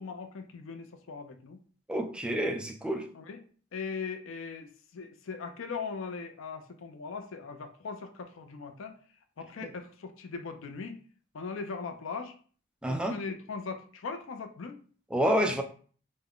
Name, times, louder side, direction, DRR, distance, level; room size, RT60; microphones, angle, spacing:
voice 1, 0.0-1.6 3.1-3.4 3.7-8.9 9.4-11.0 11.3-12.3 12.9-14.8, left 5 dB, 80° left, 7 dB, 0.5 m, -39 dB
voice 2, 1.9-3.1 9.6-9.7 12.8-13.2 15.1-15.6, equal, 5° right, 4 dB, 0.3 m, -28 dB
3.5 x 2.1 x 3.6 m, 0.43 s
head